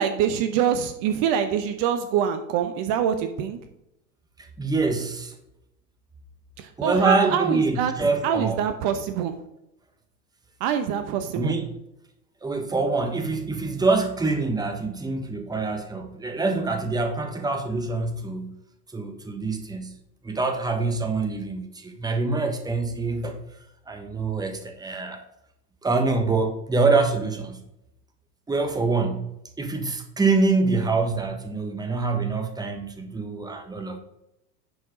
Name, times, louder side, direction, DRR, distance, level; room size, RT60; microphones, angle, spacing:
voice 1, 0.0-3.6 6.6-9.4 10.6-11.6, right 8 dB, 45° right, 9 dB, 1.0 m, -25 dB
voice 2, 4.6-5.3 6.8-8.6 11.4-11.7 12.4-18.6 18.9-20.0 20.2-23.4 23.9-25.2 25.8-27.6 28.5-29.3 29.6-34.0, right 3 dB, 10° right, 6 dB, 1.3 m, -25 dB
10.5 x 4.5 x 4.9 m, 0.83 s
hypercardioid pair, 95°, 49 cm